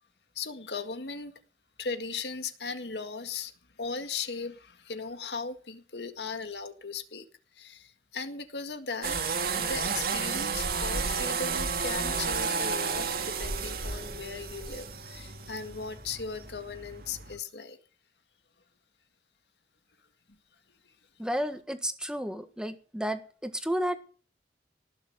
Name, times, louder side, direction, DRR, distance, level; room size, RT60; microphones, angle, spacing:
voice 1, 0.4-1.3 1.8-3.5 3.8-7.3 7.6-17.8, left 4 dB, 75° left, 1.9 m, -37 dB
sound 1, 9.0-17.4, right 5 dB, 60° right, 2.0 m, -32 dB
voice 2, 21.2-24.0, equal, 5° right, 1.5 m, -32 dB
19.0 x 6.9 x 8.1 m
head